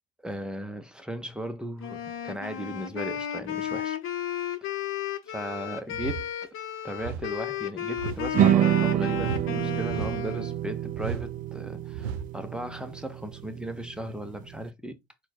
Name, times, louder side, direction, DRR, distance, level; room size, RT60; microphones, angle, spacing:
voice 1, 0.2-4.0 4.6-4.7 5.3-6.3 6.8-15.0, equal, 5° right, 0.8 m, -36 dB
Wind instrument woodwind instrument, 1.8-10.6, left 10 dB, 40° left, 1.1 m, -34 dB
sound 1, 5.9-6.3 7.0-7.3 8.0-8.3 9.1-9.5 9.9-10.3 10.9-11.3 11.9-12.3, right 7 dB, 65° right, 0.7 m, -35 dB
sound 2, 8.3-14.6, right 11 dB, 25° right, 0.4 m, -27 dB
4.3 x 2.4 x 4.2 m
hypercardioid pair, 85°, 31 cm